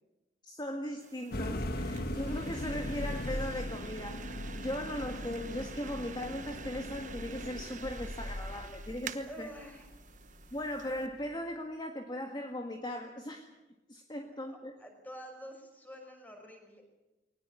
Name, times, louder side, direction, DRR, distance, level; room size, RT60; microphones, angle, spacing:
voice 1, 0.4-9.5 10.5-13.5 13.9-14.7, left 1 dB, 25° left, 4 dB, 1.8 m, -38 dB
sound 1, 1.0-11.1, right 7 dB, 45° right, 1.1 m, -49 dB
sound 2, 1.3-11.3, left 1 dB, 60° left, 1.8 m, -39 dB
voice 2, 9.3-9.9 14.5-16.8, equal, 10° left, 3 dB, 5.8 m, -48 dB
22.0 x 20.0 x 8.6 m, 1.0 s
head